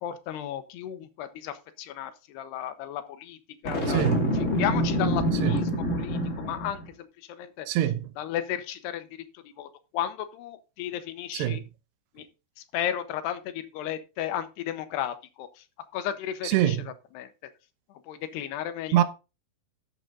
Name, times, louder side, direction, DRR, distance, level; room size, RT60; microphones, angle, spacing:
voice 1, 0.0-3.4 3.6-4.1 4.5-7.7 8.2-9.1 9.3-11.6 12.2-12.3 12.7-15.6 15.9-16.8 17.1-17.3 18.1-18.9, left 10 dB, 75° left, 2.8 m, -34 dB
Boom, 3.7-6.9, equal, 25° left, 2.0 m, -26 dB
voice 2, 3.9-4.3 5.4-5.6 7.7-8.1 11.3-11.6 16.4-16.9 18.9-19.0, right 12 dB, 75° right, 3.0 m, -24 dB
11.0 x 7.6 x 3.9 m
omnidirectional pair, 5.1 m